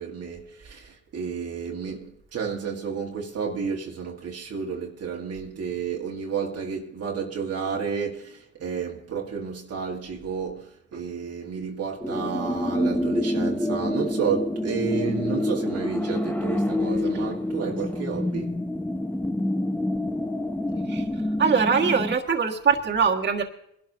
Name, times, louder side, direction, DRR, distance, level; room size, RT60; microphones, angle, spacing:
voice 1, 0.0-18.6, right 6 dB, 55° right, 1.5 m, -31 dB
sound 1, 12.0-22.2, left 1 dB, 5° left, 0.9 m, -27 dB
voice 2, 21.4-23.4, right 6 dB, 35° right, 1.7 m, -22 dB
23.5 x 12.0 x 2.7 m
cardioid pair, 90°, 30 cm